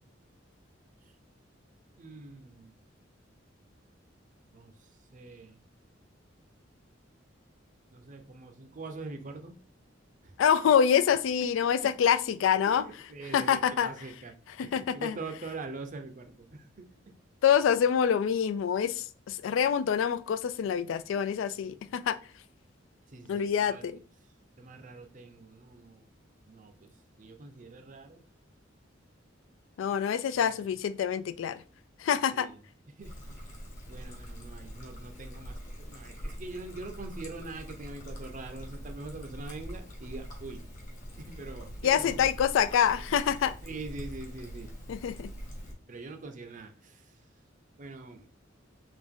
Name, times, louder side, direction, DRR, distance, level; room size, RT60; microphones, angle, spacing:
voice 1, 2.0-2.7 4.5-4.7 5.1-5.6 7.9-9.5 10.2-10.3 12.7-14.3 14.6-17.1 23.1-23.8 24.6-26.0 26.4-26.9 27.2-28.2 30.3-30.6 32.3-32.5 33.0-33.5 33.9-40.6 41.2-42.2 43.6-44.7 45.9-47.0 47.8-48.3, right 3 dB, 40° right, 0.6 m, -43 dB
voice 2, 10.4-12.8 13.2-13.9 14.5-15.2 17.4-22.2 23.3-24.0 29.8-31.6 32.0-32.5 41.8-43.6 44.9-45.3, left 8 dB, 80° left, 0.3 m, -26 dB
Trickle dribble, 33.0-45.7, equal, 45° left, 1.2 m, -43 dB
3.6 x 2.6 x 3.6 m
head